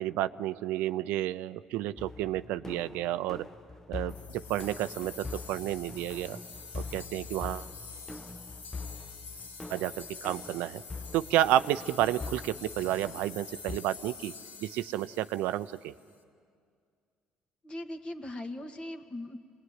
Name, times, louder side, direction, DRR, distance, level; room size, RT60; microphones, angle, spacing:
voice 1, 0.0-3.5 3.9-6.4 6.7-7.7 9.7-9.9 10.2-10.8 11.1-14.3 14.6-15.9, right 13 dB, 80° right, 13 dB, 0.6 m, -31 dB
sound 1, 2.0-13.8, left 3 dB, 15° left, 0.9 m, -44 dB
sound 2, 4.1-16.1, left 4 dB, 75° left, 3.4 m, -47 dB
voice 2, 17.6-19.4, left 1 dB, 35° left, 7 dB, 2.1 m, -39 dB
26.0 x 20.0 x 9.6 m, 2.2 s
supercardioid pair, 75°, 3 cm